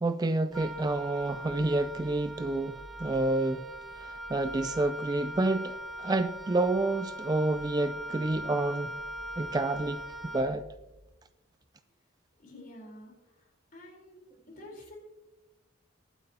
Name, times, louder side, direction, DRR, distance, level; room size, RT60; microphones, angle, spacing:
voice 1, 0.0-3.7 4.0-8.9 9.4-10.6, right 2 dB, 20° right, 0.3 m, -29 dB
Wind instrument woodwind instrument, 0.5-10.9, right 1 dB, ahead, 1.3 m, -41 dB
voice 2, 12.4-13.1 13.7-14.2 14.5-15.0, left 1 dB, 45° left, 4.0 m, -48 dB
22.0 x 9.1 x 2.8 m
head